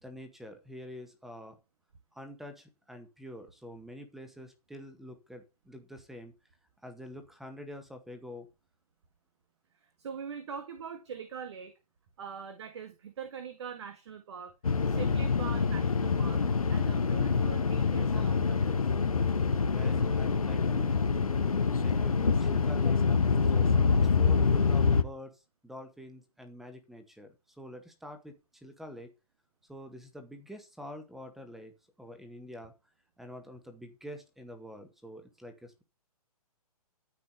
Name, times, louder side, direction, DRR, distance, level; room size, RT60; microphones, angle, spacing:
voice 1, 0.0-1.6 2.1-6.3 6.8-8.5 19.7-23.0 23.5-23.8 24.2-29.1 29.7-31.7 32.0-32.7 33.2-35.8, equal, ahead, 1.8 m, -46 dB
voice 2, 9.7-11.8 12.2-14.5 14.9-16.4 16.7-18.8, right 6 dB, 45° right, 1.9 m, -42 dB
sound 1, 14.6-25.0, left 5 dB, 65° left, 1.3 m, -26 dB
13.5 x 5.8 x 6.7 m
figure-of-eight pair, 125°, 20 cm